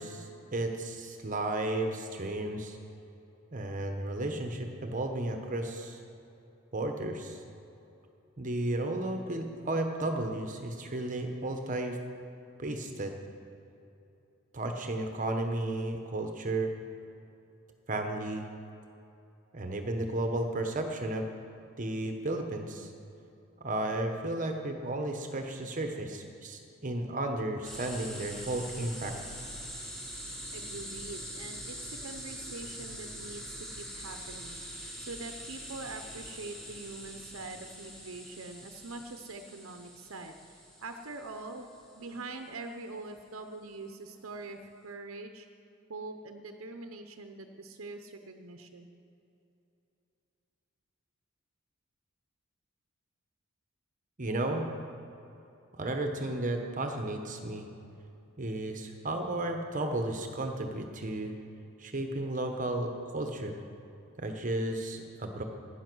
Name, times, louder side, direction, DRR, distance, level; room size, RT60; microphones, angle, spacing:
voice 1, 0.0-2.8 3.5-6.0 6.7-7.4 8.4-12.0 12.6-13.1 14.5-16.7 17.9-18.4 19.5-21.2 21.8-22.9 23.6-29.1 54.2-54.6 55.8-57.7 58.4-61.3 61.8-63.6 64.2-65.4, right 1 dB, 40° right, 4 dB, 1.1 m, -33 dB
sound 1, 27.6-42.2, equal, 5° left, 2.3 m, -44 dB
voice 2, 30.5-45.5 45.9-49.0, right 3 dB, 90° right, 6 dB, 0.8 m, -44 dB
16.0 x 10.5 x 6.2 m, 2.9 s
head